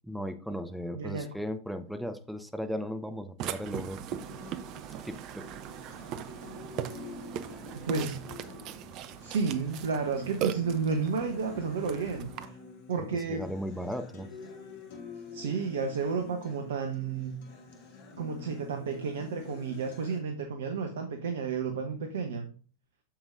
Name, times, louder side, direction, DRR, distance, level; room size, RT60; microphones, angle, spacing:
voice 1, 0.0-4.2 5.0-5.4 13.0-14.3, equal, ahead, 8 dB, 0.8 m, -36 dB
voice 2, 0.9-1.3 7.7-8.2 9.2-12.6 12.9-13.5 15.3-17.4 18.2-22.5, right 5 dB, 60° right, 6 dB, 1.0 m, -32 dB
Burping eructation, 3.4-12.5, right 11 dB, 40° right, 0.6 m, -39 dB
Acoustic guitar, 4.2-20.2, left 4 dB, 50° left, 1.9 m, -48 dB
8.6 x 7.1 x 2.6 m, 0.39 s
figure-of-eight pair, 90°, 0 cm